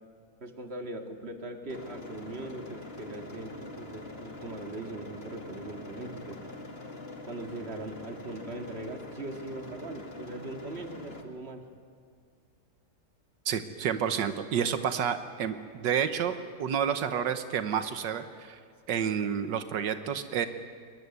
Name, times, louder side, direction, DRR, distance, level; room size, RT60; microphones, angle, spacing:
voice 1, 0.4-6.4 7.3-11.6, right 2 dB, 35° right, 4 dB, 2.2 m, -40 dB
sound 1, 1.7-11.2, left 2 dB, 35° left, 2.2 m, -44 dB
voice 2, 13.5-16.3 16.6-18.6 18.9-20.5, right 8 dB, 85° right, 9 dB, 1.7 m, -29 dB
22.5 x 21.5 x 9.6 m, 2.1 s
omnidirectional pair, 1.9 m